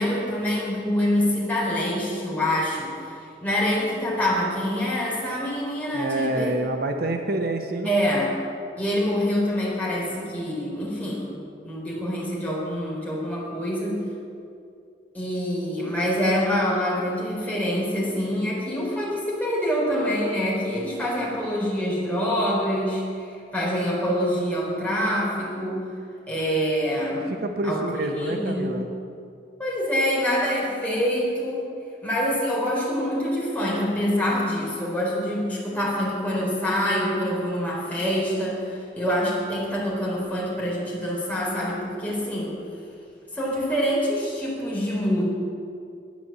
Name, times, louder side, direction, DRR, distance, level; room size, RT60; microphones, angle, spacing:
voice 1, 0.0-3.1 3.4-6.5 7.8-8.3 8.8-11.3 11.6-14.0 15.1-25.8 26.3-27.3 27.6-27.8 28.1-28.8 29.6-31.7 32.0-42.5 43.3-45.2, equal, 10° left, -5 dB, 4.1 m, -25 dB
voice 2, 5.9-7.9 27.3-28.9, right 2 dB, 60° right, 4 dB, 0.9 m, -27 dB
11.5 x 9.7 x 7.5 m, 2.4 s
head